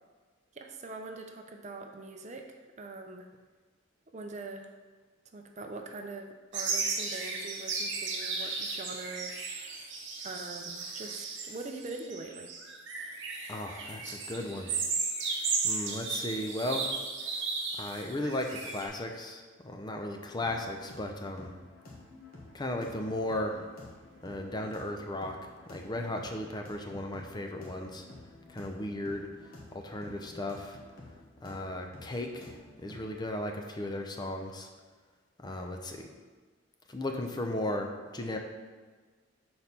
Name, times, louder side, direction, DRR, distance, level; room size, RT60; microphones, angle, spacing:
voice 1, 0.5-3.3 4.1-4.8 5.3-6.3 6.5-9.9 10.2-12.5, right 3 dB, 35° right, 4 dB, 0.5 m, -43 dB
sound 1, 6.5-18.9, right 4 dB, 60° right, 1.0 m, -35 dB
voice 2, 13.5-14.8 15.6-17.0 17.8-21.5 22.5-23.6 24.2-25.4 25.7-28.0 28.5-29.3 29.7-30.8 31.4-32.5 32.8-34.7 35.4-36.1 36.9-38.4, left 1 dB, 20° left, 3 dB, 0.5 m, -35 dB
sound 2, 20.4-33.2, left 2 dB, 45° left, 1.3 m, -51 dB
6.3 x 4.3 x 5.4 m, 1.4 s
head